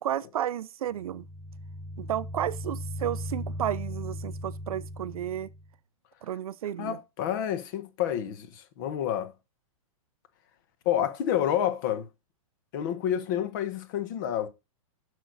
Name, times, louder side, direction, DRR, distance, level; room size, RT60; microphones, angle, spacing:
voice 1, 0.0-1.3 2.0-5.5 6.2-7.0, right 11 dB, 80° right, 0.7 m, -32 dB
sound 1, 0.9-5.7, left 1 dB, 5° left, 2.5 m, -38 dB
voice 2, 6.8-9.3 10.8-12.1 12.7-14.5, left 10 dB, 35° left, 1.3 m, -29 dB
11.0 x 6.6 x 4.1 m
supercardioid pair, 175°, 18 cm